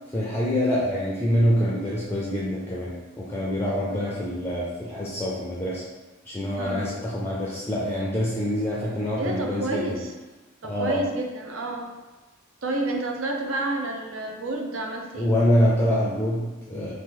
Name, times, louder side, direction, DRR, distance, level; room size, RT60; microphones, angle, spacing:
voice 1, 0.1-5.8 6.3-10.0 10.6-11.0 15.1-16.9, equal, 10° left, -6 dB, 0.4 m, -25 dB
voice 2, 3.9-4.2 6.6-6.9 9.2-10.1 10.6-11.9 12.6-15.3, right 2 dB, 70° right, 1 dB, 0.6 m, -30 dB
2.9 x 2.5 x 3.7 m, 1.2 s
head